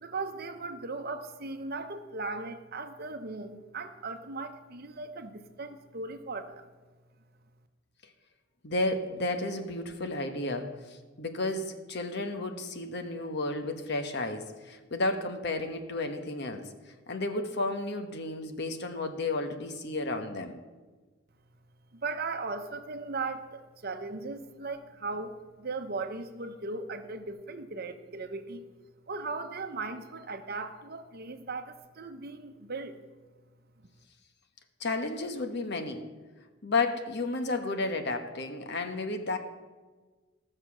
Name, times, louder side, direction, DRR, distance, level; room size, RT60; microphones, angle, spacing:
voice 1, 0.0-6.7 21.9-28.6 29.1-33.0, right 3 dB, 50° right, 8 dB, 0.9 m, -38 dB
voice 2, 8.6-16.7 17.1-20.6 34.8-36.1 36.6-39.4, left 2 dB, 55° left, 7 dB, 1.1 m, -32 dB
15.0 x 6.6 x 6.2 m, 1.3 s
head